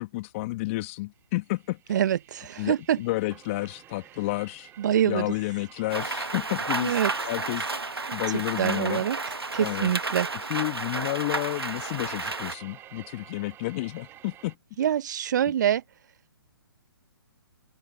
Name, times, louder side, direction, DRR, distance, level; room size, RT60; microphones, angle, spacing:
voice 1, 0.0-2.0 2.6-4.7 5.1-7.0 7.2-7.7 8.1-9.1 9.6-9.9 10.5-14.6, left 20 dB, 35° left, 2.5 m, -31 dB
sound 1, 1.4-14.6, right 12 dB, 20° right, 3.3 m, -50 dB
voice 2, 1.9-3.0 4.8-5.3 6.8-7.1 8.1-9.2 9.5-10.3 14.8-15.8, right 10 dB, 50° right, 1.1 m, -25 dB
Rain, 5.9-12.5, right 3 dB, 85° right, 1.8 m, -32 dB
open air
figure-of-eight pair, 130°, 12 cm